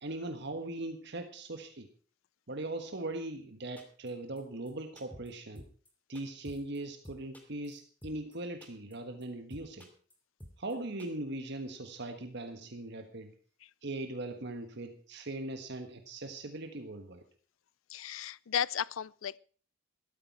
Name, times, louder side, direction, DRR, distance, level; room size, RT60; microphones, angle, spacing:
voice 1, 0.0-1.9 2.5-5.7 6.1-9.9 10.6-13.3 13.8-17.2, right 2 dB, 60° right, 1.5 m, -40 dB
sound 1, 3.8-4.1 4.4-4.5 4.7-4.8 5.0-5.3 5.6-5.9 6.1-6.8 7.0-8.3 8.6-8.9 9.2-9.3 9.5-10.1 10.4-10.7 11.0-11.1, equal, 10° left, 2.7 m, -50 dB
voice 2, 17.9-19.4, left 9 dB, 85° left, 0.5 m, -34 dB
13.5 x 13.0 x 4.6 m
head